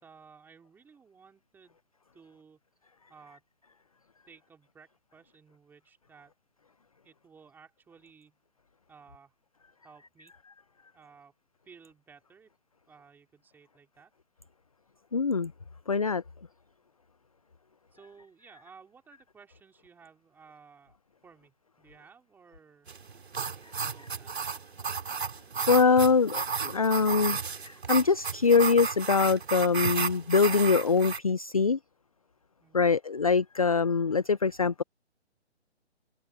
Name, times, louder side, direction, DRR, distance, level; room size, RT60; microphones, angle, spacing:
voice 1, 0.0-1.8 2.1-2.6 3.1-3.4 4.3-6.3 7.0-8.4 8.9-9.3 9.8-10.3 10.9-11.3 11.7-12.5 12.9-14.1 17.9-21.0 21.2-22.9 23.7-24.4 32.6-33.0, right 6 dB, 5° right, 4.2 m, -56 dB
voice 2, 15.1-15.5 15.9-16.2 25.7-27.4 27.6-31.8 32.7-34.8, left 5 dB, 35° left, 0.4 m, -23 dB
sound 1, 22.9-31.2, right 6 dB, 65° right, 3.6 m, -33 dB
hypercardioid pair, 160°, 34 cm